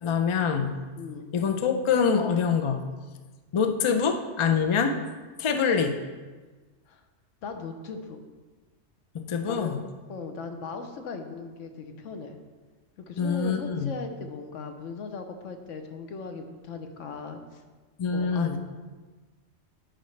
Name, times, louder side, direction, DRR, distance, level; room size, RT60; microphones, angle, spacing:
voice 1, 0.0-0.8 1.3-2.8 3.5-5.0 5.4-6.0 9.1-9.8 13.2-13.9 18.0-18.6, left 6 dB, 55° left, 5 dB, 0.3 m, -25 dB
voice 2, 1.0-1.3 6.9-7.0 7.4-8.2 9.5-9.8 10.1-12.4 13.0-17.6 18.1-18.6, left 4 dB, 85° left, 6 dB, 1.1 m, -38 dB
10.5 x 5.2 x 3.2 m, 1.3 s
omnidirectional pair, 1.2 m